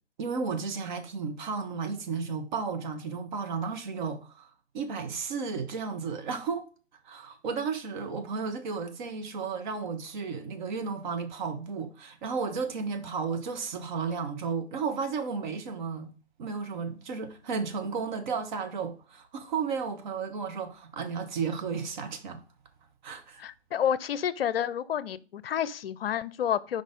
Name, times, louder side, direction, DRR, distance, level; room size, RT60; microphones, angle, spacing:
voice 1, 0.2-4.5 4.7-6.7 7.0-16.1 16.4-22.4 23.0-23.4, right 5 dB, 45° right, 1.1 m, -33 dB
voice 2, 23.4-26.8, left 9 dB, 60° left, 0.6 m, -29 dB
5.1 x 4.1 x 5.1 m
hypercardioid pair, 135°, 34 cm